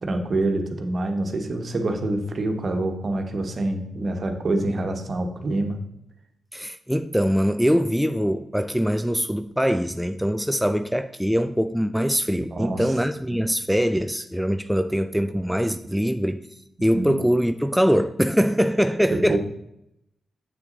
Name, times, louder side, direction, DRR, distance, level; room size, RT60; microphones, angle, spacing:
voice 1, 0.0-5.8 12.3-12.9 16.9-17.2 19.1-19.4, right 2 dB, 55° right, 1.4 m, -26 dB
voice 2, 6.5-16.4 16.8-19.4, equal, ahead, 0.5 m, -23 dB
7.9 x 7.0 x 3.9 m
supercardioid pair, 45°, 0 cm